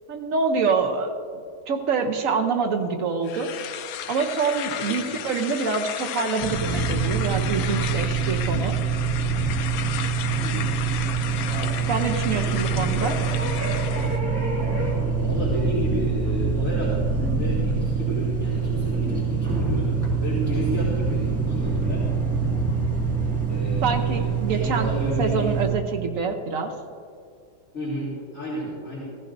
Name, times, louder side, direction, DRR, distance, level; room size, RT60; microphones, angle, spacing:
voice 1, 0.1-1.1 1.7-3.5 4.1-8.8 11.9-13.2 23.8-24.9 25.2-26.7, right 5 dB, 55° right, 5 dB, 1.0 m, -26 dB
sound 1, 3.2-14.2, left 10 dB, 80° left, 1.4 m, -33 dB
sound 2, 6.4-25.7, right 5 dB, 10° right, 1.6 m, -25 dB
voice 2, 10.4-10.8 15.2-17.0 17.4-19.9 20.2-22.0 23.5-25.5 27.7-29.0, equal, 35° left, -9 dB, 2.6 m, -31 dB
15.5 x 15.0 x 2.6 m, 2.2 s
omnidirectional pair, 2.1 m